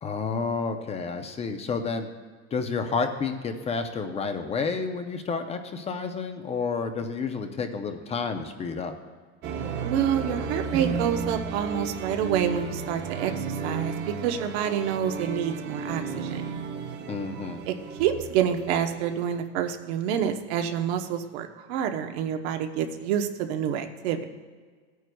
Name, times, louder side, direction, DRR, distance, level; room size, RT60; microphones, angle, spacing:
voice 1, 0.0-2.1 2.5-8.9 17.1-17.6, left 5 dB, 20° left, 7 dB, 0.5 m, -30 dB
sound 1, 9.4-19.4, right 5 dB, 35° right, 0.7 m, -34 dB
voice 2, 9.8-16.4 17.7-24.3, right 9 dB, 85° right, 6 dB, 1.0 m, -28 dB
16.5 x 9.2 x 2.3 m, 1.5 s
cardioid pair, 155°, 31 cm